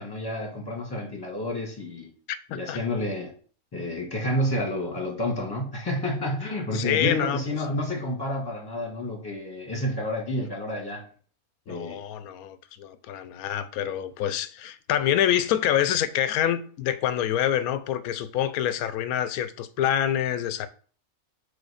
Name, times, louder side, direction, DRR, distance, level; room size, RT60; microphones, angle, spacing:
voice 1, 0.0-2.1 2.5-3.3 3.7-11.0 11.7-12.0, left 1 dB, 15° left, 1.5 m, -30 dB
voice 2, 6.7-7.4 11.7-20.7, left 10 dB, 75° left, 1.0 m, -26 dB
4.9 x 4.2 x 4.9 m
omnidirectional pair, 1.6 m